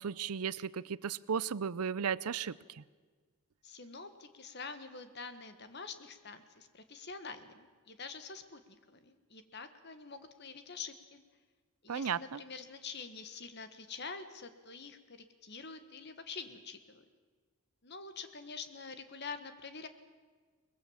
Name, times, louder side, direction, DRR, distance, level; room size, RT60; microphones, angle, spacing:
voice 1, 0.0-2.8 11.9-12.4, right 7 dB, 85° right, 19 dB, 0.6 m, -35 dB
voice 2, 3.6-11.2 11.8-17.0 17.8-19.9, left 5 dB, 50° left, 10 dB, 1.5 m, -46 dB
23.0 x 21.0 x 7.3 m, 1.5 s
head